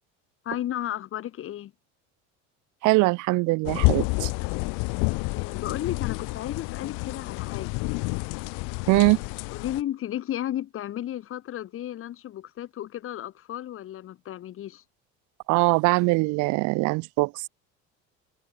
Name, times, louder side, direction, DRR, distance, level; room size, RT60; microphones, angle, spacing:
voice 1, 0.4-1.7 5.3-7.8 8.8-9.1 9.5-14.8, left 12 dB, 40° left, 2.2 m, -34 dB
voice 2, 2.8-4.3 8.9-9.2 15.5-17.3, right 24 dB, 60° right, 1.2 m, -22 dB
sound 1, 3.6-9.8, left 31 dB, 70° left, 1.6 m, -29 dB
cardioid pair, 135°, 33 cm